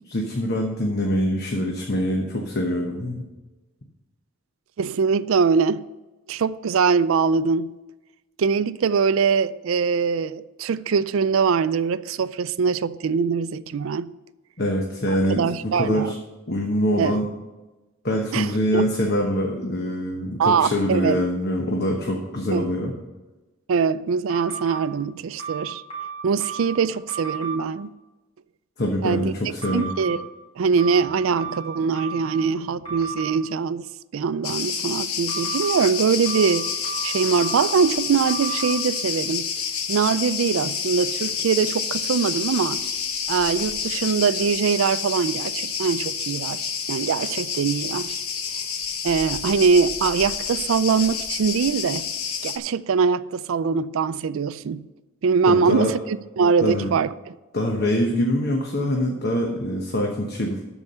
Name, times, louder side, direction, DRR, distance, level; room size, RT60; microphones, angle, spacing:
voice 1, 0.0-3.2 14.6-15.4 15.7-16.2 16.5-17.2 18.0-22.9 28.8-29.9 55.5-55.9 56.6-56.9 57.5-60.6, equal, 45° left, 1.1 m, -24 dB
voice 2, 4.8-5.8 6.3-7.7 8.4-14.1 15.3-16.1 17.0-17.2 18.3-18.9 20.4-21.2 22.5-22.7 23.7-25.8 26.2-27.9 29.0-29.3 29.7-30.2 30.6-33.9 34.1-36.7 37.0-39.5 39.9-42.8 43.3-48.2 49.0-52.1 52.4-54.8 55.2-57.3, right 5 dB, 70° right, 0.4 m, -22 dB
sound 1, 24.3-24.8 25.4-26.7 27.1-27.5 29.6-30.2 30.8-32.4 32.8-33.3 35.3-35.7 36.3-37.8 38.3-38.7, right 5 dB, 30° left, 2.2 m, -33 dB
Cricket, 34.4-52.6, left 7 dB, 85° left, 1.0 m, -29 dB
12.5 x 4.7 x 6.7 m
head